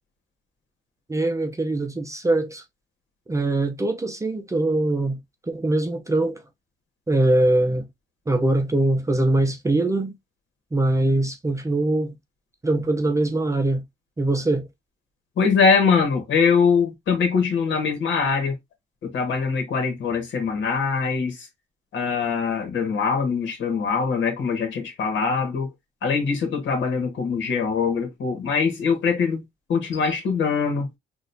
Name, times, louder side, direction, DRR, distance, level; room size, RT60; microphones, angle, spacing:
voice 1, 1.1-2.6 3.3-5.2 5.5-6.4 7.1-7.9 8.3-10.1 10.7-12.2 12.6-13.8 14.2-14.7, right 2 dB, 15° right, 0.6 m, -22 dB
voice 2, 15.4-18.5 19.0-21.5 21.9-25.7 26.0-29.4 29.7-30.9, left 5 dB, 70° left, 1.5 m, -22 dB
4.0 x 2.6 x 2.6 m
cardioid pair, 90°, 20 cm